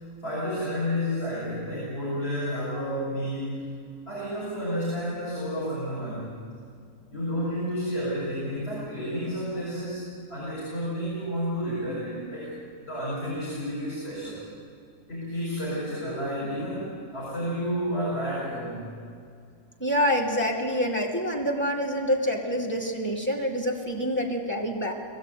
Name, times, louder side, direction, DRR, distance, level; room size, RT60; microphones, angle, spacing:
voice 1, 0.2-3.7 4.1-6.4 7.1-10.0 10.3-12.5 12.8-14.5 15.1-18.9, equal, 45° left, -8 dB, 7.0 m, -31 dB
voice 2, 19.8-24.9, equal, 5° left, -1 dB, 2.5 m, -26 dB
20.0 x 15.5 x 9.2 m, 2.2 s
omnidirectional pair, 1.5 m